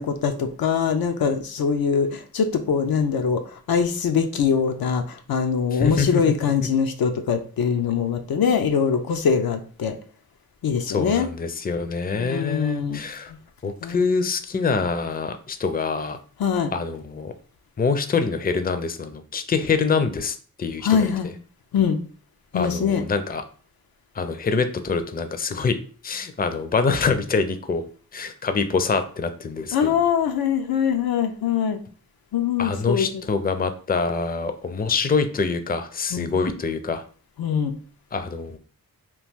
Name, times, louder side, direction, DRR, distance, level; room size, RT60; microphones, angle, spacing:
voice 1, 0.0-3.4 3.7-10.0 10.6-11.3 12.1-13.0 13.8-14.1 16.4-16.7 20.8-21.3 21.7-22.0 22.5-23.0 29.7-31.8 32.3-33.2 36.1-36.3 37.4-37.8, left 6 dB, 80° left, 6 dB, 0.5 m, -23 dB
voice 2, 5.7-6.3 10.9-13.3 13.6-16.2 16.7-17.3 17.8-21.1 22.5-23.4 24.1-25.8 26.0-27.8 28.1-29.9 32.6-37.0 38.1-38.6, left 4 dB, 25° left, 9 dB, 0.4 m, -25 dB
3.0 x 2.3 x 3.5 m, 0.42 s
cardioid pair, 40°, 36 cm